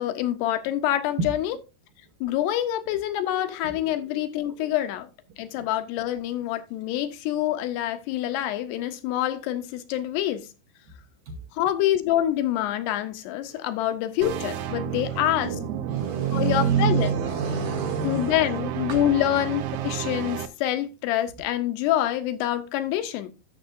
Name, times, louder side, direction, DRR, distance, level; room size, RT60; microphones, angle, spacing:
voice 1, 0.0-1.6 2.2-5.1 5.4-10.5 11.6-15.6 16.3-17.1 18.0-23.3, left 12 dB, 80° left, 2.7 m, -26 dB
sound 1, 14.2-20.5, right 11 dB, 85° right, 1.9 m, -32 dB
voice 2, 14.9-18.6 18.9-19.0, right 6 dB, 65° right, 2.2 m, -27 dB
14.5 x 6.5 x 2.6 m
omnidirectional pair, 4.9 m